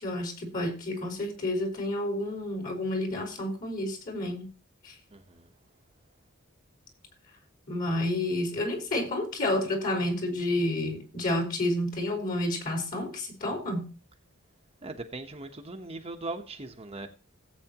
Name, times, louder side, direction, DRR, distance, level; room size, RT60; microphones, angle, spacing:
voice 1, 0.0-4.5 4.8-4.9 7.7-13.9, left 1 dB, 45° left, 4.8 m, -30 dB
voice 2, 5.1-5.5 14.8-17.1, right 2 dB, 30° right, 1.1 m, -39 dB
17.0 x 8.4 x 3.0 m
head